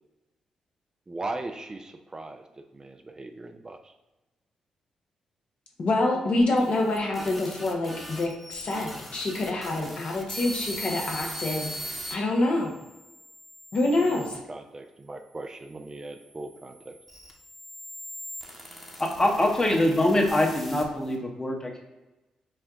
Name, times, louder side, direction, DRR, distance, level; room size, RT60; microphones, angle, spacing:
voice 1, 1.1-2.4 2.7-3.8 14.1-17.0, right 2 dB, 30° right, 6 dB, 0.4 m, -38 dB
voice 2, 5.8-11.7 12.1-12.7 13.7-14.3, left 2 dB, 60° left, 0 dB, 0.9 m, -26 dB
sound 1, 6.4-12.1 12.8-14.4 15.2-21.2, equal, ahead, 1.0 m, -41 dB
voice 3, 19.2-21.8, left 1 dB, 25° left, 1 dB, 0.9 m, -23 dB
4.4 x 2.2 x 3.6 m, 1.0 s
hypercardioid pair, 45°, 2 cm